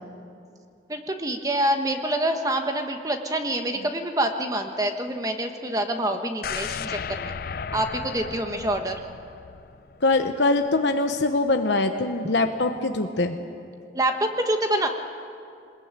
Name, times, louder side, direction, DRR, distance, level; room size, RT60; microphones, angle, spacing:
voice 1, 0.9-7.3 7.7-9.0 13.9-14.9, right 1 dB, 20° right, 5 dB, 1.2 m, -26 dB
sound 1, 6.4-10.4 10.8-10.9, left 6 dB, 50° left, 0.5 m, -35 dB
voice 2, 10.0-13.4, left 2 dB, 70° left, 6 dB, 1.0 m, -23 dB
23.0 x 20.5 x 9.0 m, 2.5 s
head